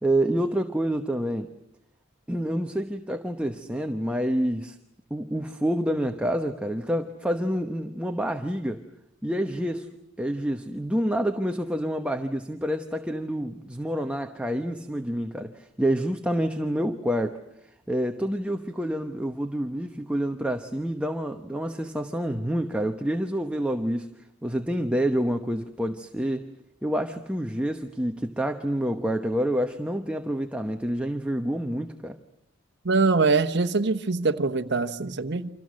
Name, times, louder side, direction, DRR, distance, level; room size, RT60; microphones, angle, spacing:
voice 1, 0.0-1.5 2.3-4.8 5.1-8.8 9.2-9.9 10.2-17.4 17.9-24.1 24.4-26.5 26.8-32.2, equal, 5° right, 5 dB, 1.0 m, -28 dB
voice 2, 32.8-35.5, right 3 dB, 60° right, 8 dB, 1.1 m, -23 dB
30.0 x 26.0 x 6.4 m, 0.77 s
head